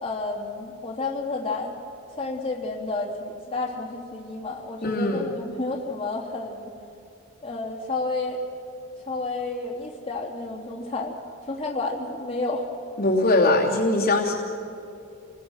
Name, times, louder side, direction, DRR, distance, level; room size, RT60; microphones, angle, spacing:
voice 1, 0.0-1.7 2.2-6.7 7.4-8.4 9.1-11.1 11.5-12.7, left 3 dB, 25° left, -2 dB, 2.9 m, -30 dB
voice 2, 4.8-5.3 13.0-14.3, left 2 dB, 45° left, -2 dB, 2.8 m, -21 dB
29.0 x 21.5 x 6.4 m, 2.6 s
head